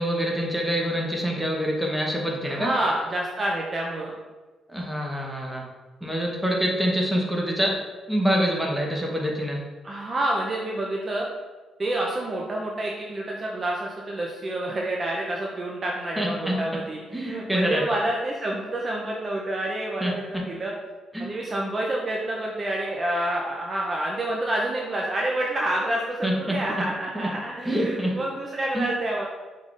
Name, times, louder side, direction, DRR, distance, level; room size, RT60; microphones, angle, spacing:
voice 1, 0.0-2.7 4.7-5.6 6.0-7.8 8.1-9.6 16.2-16.6 17.1-17.9 20.0-20.1 21.1-21.3 26.2-26.6 27.6-28.2 28.7-28.9, equal, 5° right, -2 dB, 1.0 m, -25 dB
voice 2, 2.4-4.1 9.8-11.3 11.8-20.7 21.2-29.2, right 1 dB, 35° right, -2 dB, 0.6 m, -28 dB
5.2 x 3.7 x 2.5 m, 1.3 s
cardioid pair, 90°, 0 cm